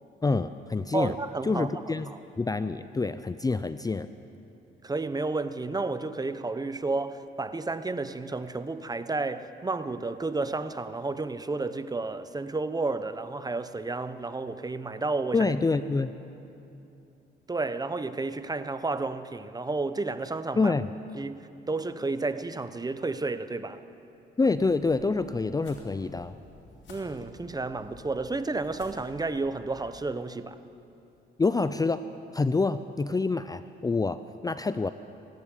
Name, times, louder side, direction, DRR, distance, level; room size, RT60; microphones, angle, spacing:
voice 1, 0.2-1.2 1.4-2.1 2.4-4.1 15.3-16.1 20.6-20.8 24.4-26.4 31.4-32.0 32.3-34.9, left 3 dB, 20° left, 12 dB, 0.5 m, -27 dB
voice 2, 0.9-2.2 4.8-15.5 17.5-20.7 21.2-23.8 26.9-30.6, right 3 dB, 20° right, 12 dB, 0.9 m, -31 dB
sound 1, 24.6-30.0, left 3 dB, 65° left, 5.0 m, -52 dB
25.5 x 10.5 x 9.9 m, 2.8 s
cardioid pair, 90°, 20 cm